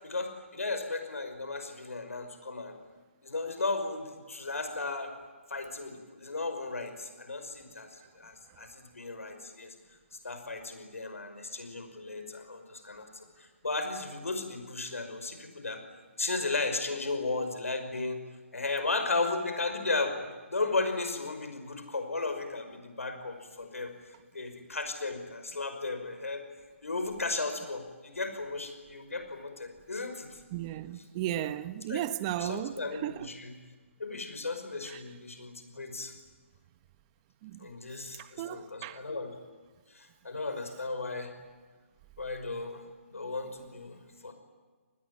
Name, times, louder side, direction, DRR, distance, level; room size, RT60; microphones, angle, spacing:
voice 1, 0.0-2.7 3.2-5.1 5.5-9.7 10.2-15.8 16.2-18.2 18.5-20.2 20.5-23.9 24.3-26.4 26.8-30.4 31.9-32.0 32.4-33.5 34.0-36.1 37.6-39.4 39.9-41.4 42.2-42.8 43.1-44.3, left 3 dB, 85° left, 5.5 m, -35 dB
voice 2, 30.5-33.3 34.9-35.0 37.4-37.7 38.1-39.0, right 12 dB, 25° right, 1.1 m, -35 dB
29.0 x 20.5 x 9.8 m
hypercardioid pair, 150°, 7 cm